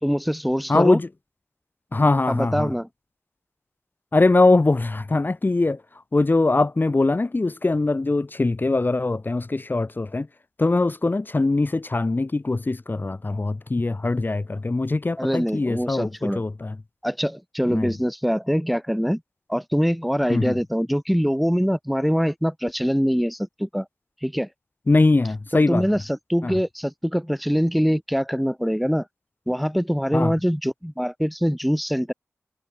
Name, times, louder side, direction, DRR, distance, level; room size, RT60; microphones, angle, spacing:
voice 1, 0.0-1.0 2.3-2.9 15.2-16.4 17.0-19.2 19.5-23.9 24.2-24.5 25.7-29.1 29.5-32.1, equal, ahead, 5.5 m, -23 dB
voice 2, 0.7-1.1 1.9-2.7 4.1-5.8 6.1-10.3 10.6-16.8 17.7-17.9 20.3-20.6 24.9-25.8 26.4-26.6 30.1-30.3, left 2 dB, 40° left, 6.3 m, -22 dB
wide cardioid pair, 70°, 5 cm